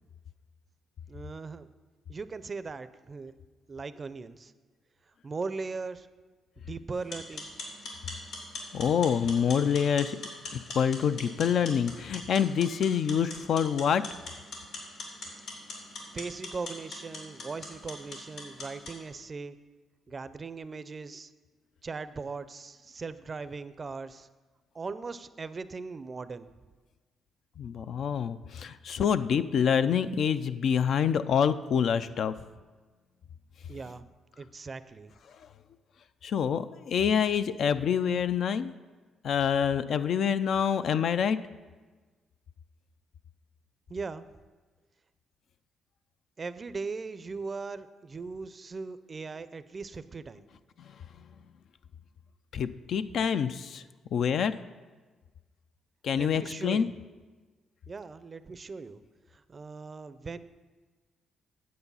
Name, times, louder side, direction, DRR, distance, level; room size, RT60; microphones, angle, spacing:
voice 1, 1.1-1.7 2.1-3.3 3.7-4.5 5.2-6.1 6.6-7.5 16.1-19.6 20.1-21.3 21.8-24.3 24.7-26.5 33.7-34.1 34.4-35.1 43.9-44.3 46.4-50.4 56.1-56.9 57.9-59.0 59.3-60.4, right 4 dB, 35° right, 14 dB, 0.5 m, -39 dB
sound 1, 6.9-19.0, left 2 dB, 80° left, 2.9 m, -42 dB
voice 2, 8.7-10.2 10.7-14.0 27.6-32.4 36.2-38.7 39.2-41.4 52.5-53.8 54.1-54.5 56.0-56.9, left 7 dB, 65° left, 12 dB, 0.4 m, -26 dB
9.5 x 7.7 x 5.5 m, 1.3 s
cardioid pair, 90°, 0 cm